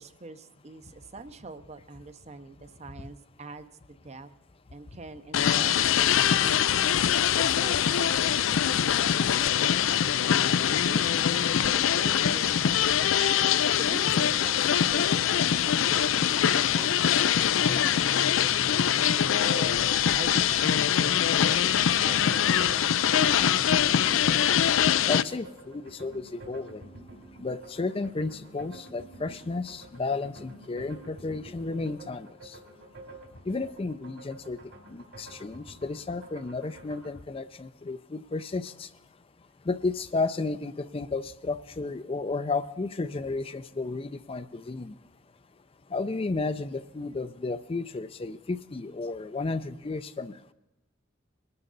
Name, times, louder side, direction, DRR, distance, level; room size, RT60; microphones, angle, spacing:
voice 1, 0.0-4.3 4.7-10.1 10.4-12.9 13.7-23.9 35.3-35.5, right 3 dB, 35° right, 11 dB, 0.7 m, -44 dB
sound 1, 5.3-25.2, left 9 dB, 85° left, 0.5 m, -23 dB
sound 2, 20.3-37.1, right 1 dB, 70° right, 3.4 m, -49 dB
voice 2, 24.3-24.8 25.1-27.0 27.4-32.6 33.4-39.0 39.4-45.0 45.9-50.4, left 3 dB, 30° left, 12 dB, 0.4 m, -33 dB
21.0 x 12.5 x 4.0 m, 0.97 s
head